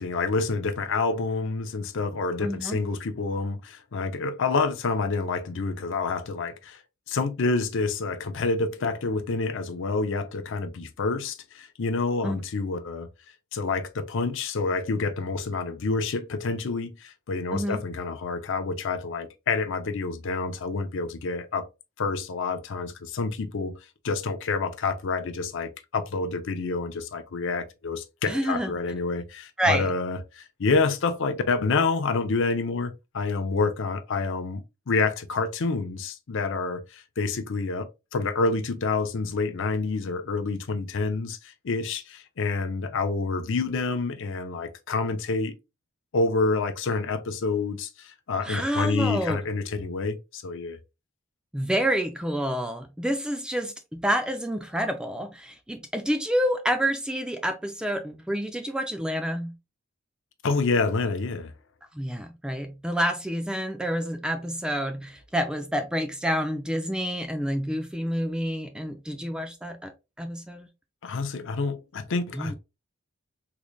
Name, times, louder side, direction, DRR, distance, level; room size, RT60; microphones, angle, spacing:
voice 1, 0.0-6.8 7.1-13.1 13.5-21.6 22.0-23.7 24.0-45.5 46.1-50.8 60.4-61.5 71.0-72.5, left 3 dB, 60° left, 0.6 m, -28 dB
voice 2, 2.4-2.8 12.2-12.4 17.5-17.8 28.3-28.7 29.6-29.9 48.4-49.4 51.5-59.5 61.9-69.9 70.2-70.7 72.3-72.5, equal, 5° right, 0.3 m, -28 dB
3.7 x 3.1 x 2.2 m
head